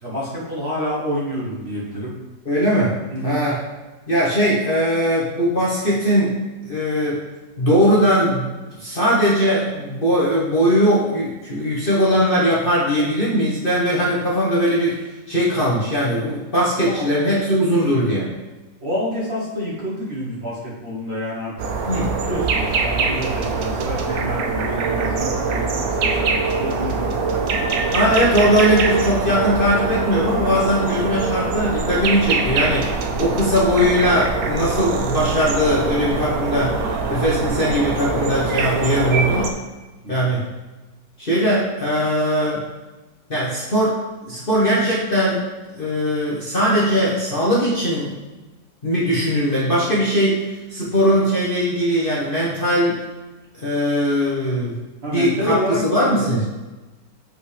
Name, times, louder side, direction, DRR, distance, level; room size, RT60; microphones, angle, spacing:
voice 1, 0.0-2.1 3.1-3.4 16.8-17.1 18.8-21.5 22.2-27.7 40.0-40.4 55.0-56.4, equal, 35° right, -6 dB, 1.5 m, -28 dB
voice 2, 2.4-2.9 3.2-3.6 4.1-6.4 6.7-7.2 7.6-8.5 8.8-18.3 21.9-22.1 27.9-39.5 40.1-40.4 41.2-42.6 43.3-44.0 44.3-45.4 45.8-48.1 48.8-53.0 53.6-54.7 55.1-56.4, equal, 35° left, -7 dB, 1.2 m, -20 dB
sound 1, 21.6-39.5, right 4 dB, 65° right, 1.0 m, -23 dB
7.8 x 5.2 x 3.4 m, 1.2 s
omnidirectional pair, 2.0 m